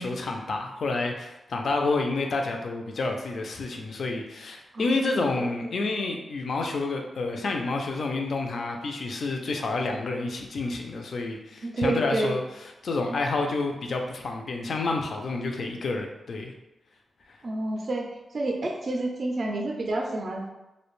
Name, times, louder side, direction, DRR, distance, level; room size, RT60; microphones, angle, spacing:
voice 1, 0.0-12.4 12.8-16.5 17.3-17.4, left 3 dB, 65° left, 2 dB, 0.3 m, -29 dB
voice 2, 5.1-5.5 11.6-12.3 17.4-18.1 18.3-20.5, right 2 dB, 45° right, 1 dB, 0.3 m, -29 dB
2.4 x 2.1 x 3.0 m, 0.97 s
wide cardioid pair, 115°, 0 cm